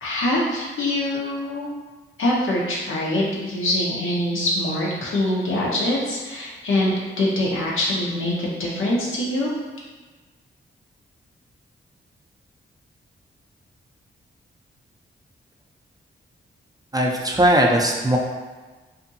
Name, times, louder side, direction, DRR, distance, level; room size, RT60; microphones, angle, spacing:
voice 1, 0.0-1.7 2.2-9.5, left 1 dB, 70° left, -5 dB, 0.8 m, -24 dB
voice 2, 16.9-18.2, right 1 dB, 20° right, -1 dB, 0.4 m, -19 dB
2.6 x 2.6 x 2.6 m, 1.3 s
cardioid pair, 60°, 21 cm